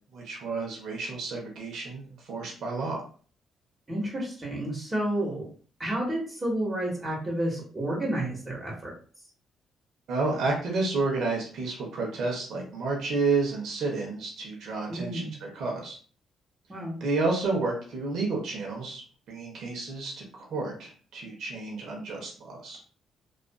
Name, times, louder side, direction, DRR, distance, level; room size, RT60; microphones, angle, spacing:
voice 1, 0.1-3.0 10.1-16.0 17.0-19.0 19.3-22.8, right 3 dB, 70° right, -1 dB, 0.7 m, -30 dB
voice 2, 3.9-5.5 5.8-8.9 14.9-15.3 16.7-17.0, right 1 dB, 25° right, -4 dB, 1.2 m, -30 dB
2.4 x 2.4 x 2.2 m, 0.42 s
cardioid pair, 90°, 0 cm